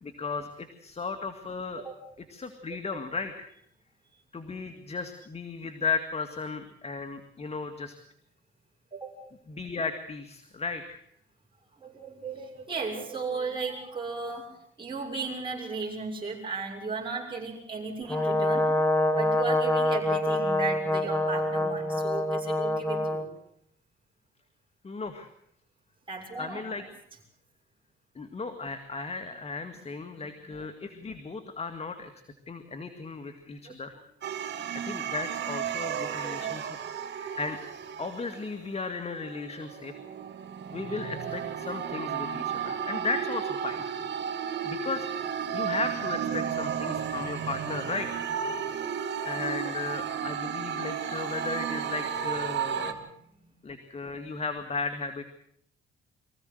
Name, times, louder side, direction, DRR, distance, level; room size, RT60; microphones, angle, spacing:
voice 1, 0.0-1.8 2.3-3.5 4.3-8.0 9.5-11.0 24.8-25.3 26.4-26.8 28.2-32.1 32.5-33.9 34.8-36.7 37.2-37.6 38.0-39.9 40.7-43.9 44.6-45.1 45.5-48.2 49.3-53.0 53.6-55.2, left 4 dB, 30° left, 8 dB, 2.2 m, -35 dB
voice 2, 11.7-23.3 26.1-26.9 30.2-30.4 33.6-34.0 35.8-36.8 46.2-46.8 48.6-48.9 52.9-53.5, right 4 dB, 25° right, -2 dB, 6.7 m, -36 dB
Brass instrument, 18.1-23.3, left 1 dB, 10° left, 2.2 m, -26 dB
sound 1, 34.2-38.6 39.2-52.9, right 8 dB, 60° right, 2.6 m, -33 dB
24.0 x 16.0 x 8.0 m, 0.70 s
cardioid pair, 90°, 20 cm